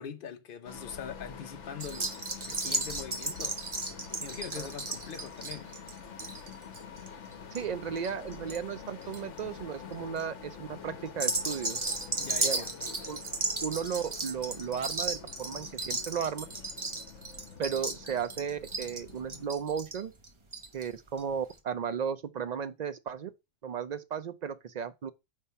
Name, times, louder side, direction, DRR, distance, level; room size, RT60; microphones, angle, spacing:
voice 1, 0.0-2.2 2.5-3.6 4.2-5.7 12.2-12.7, left 7 dB, 50° left, 0.9 m, -42 dB
sound 1, 0.6-19.5, left 6 dB, 65° left, 1.3 m, -47 dB
sound 2, 1.8-8.6 8.9-9.4 9.9-10.2 11.1-20.9 21.2-21.3 21.5-21.6, right 2 dB, 25° right, 0.9 m, -35 dB
voice 2, 7.5-11.8 12.4-12.6 13.1-13.2 13.6-16.5 17.6-20.1 20.7-23.3 23.6-25.1, right 7 dB, 70° right, 0.4 m, -35 dB
5.4 x 3.4 x 5.5 m
omnidirectional pair, 1.3 m